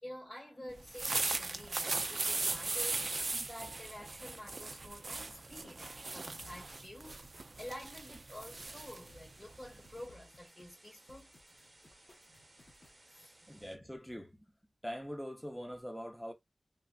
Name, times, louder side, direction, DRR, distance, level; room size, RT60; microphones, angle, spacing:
voice 1, 0.0-3.1 3.5-7.2 7.6-11.3 13.1-13.6, left 1 dB, 35° left, 1.7 m, -49 dB
sound 1, 0.8-10.1, right 3 dB, 55° right, 0.3 m, -38 dB
sound 2, 5.1-13.1, left 2 dB, 60° left, 0.8 m, -63 dB
sound 3, 8.7-13.7, right 2 dB, 40° right, 1.0 m, -62 dB
voice 2, 13.5-14.4 14.8-16.3, equal, 5° left, 0.6 m, -43 dB
3.3 x 2.3 x 2.3 m
wide cardioid pair, 90°, 0 cm